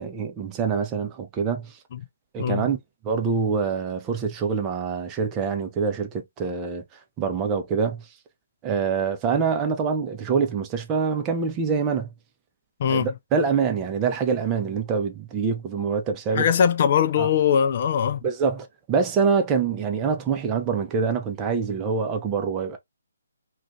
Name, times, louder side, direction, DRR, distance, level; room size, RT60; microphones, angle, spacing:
voice 1, 0.0-1.8 2.3-2.8 3.0-6.8 7.2-8.1 8.6-12.1 12.9-16.5 17.2-17.3 18.2-22.8, right 5 dB, 20° right, 0.6 m, -25 dB
voice 2, 16.4-18.2, left 8 dB, 40° left, 0.4 m, -21 dB
2.5 x 2.4 x 3.7 m
figure-of-eight pair, 140°, 0 cm